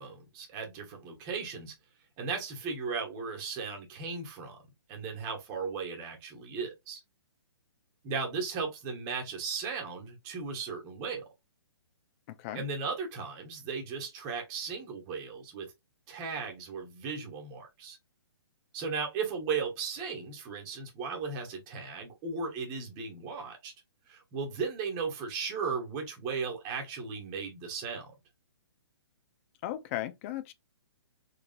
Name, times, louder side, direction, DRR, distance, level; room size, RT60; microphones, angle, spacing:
voice 1, 0.0-1.7 2.2-4.6 4.9-7.0 8.0-11.2 12.5-15.7 16.1-18.0 18.7-23.7 24.1-28.1, right 5 dB, 25° right, 1.2 m, -36 dB
voice 2, 12.3-12.6 29.6-30.5, left 13 dB, 30° left, 0.4 m, -36 dB
3.7 x 3.1 x 2.5 m
hypercardioid pair, 140°, 14 cm